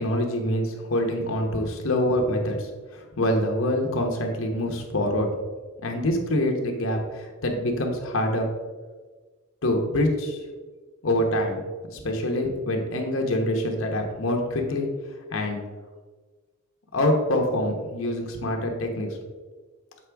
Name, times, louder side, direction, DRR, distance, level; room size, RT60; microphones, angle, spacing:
voice 1, 0.0-5.3 5.8-8.5 9.6-10.4 11.0-14.9 15.3-15.6 16.9-19.1, left 1 dB, 90° left, 2 dB, 1.0 m, -25 dB
7.4 x 4.2 x 3.5 m, 1.4 s
head